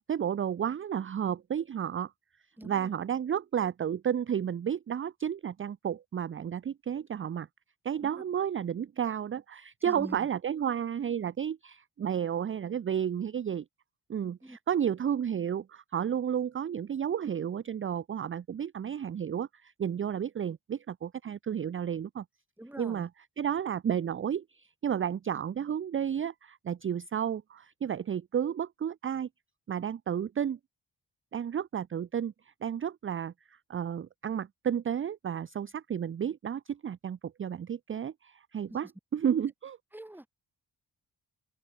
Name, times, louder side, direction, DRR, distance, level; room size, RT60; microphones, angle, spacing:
voice 1, 0.0-2.1 2.6-7.5 7.8-13.6 14.1-22.2 22.8-23.1 23.4-29.3 29.7-30.6 31.3-32.3 32.6-33.3 33.7-39.8, right 8 dB, 30° right, 0.4 m, -32 dB
voice 2, 2.6-2.9 8.0-8.2 9.8-10.3 14.4-14.6 22.6-23.1 38.7-38.9 39.9-40.3, right 1 dB, 5° right, 1.0 m, -44 dB
open air
cardioid pair, 50°, 45 cm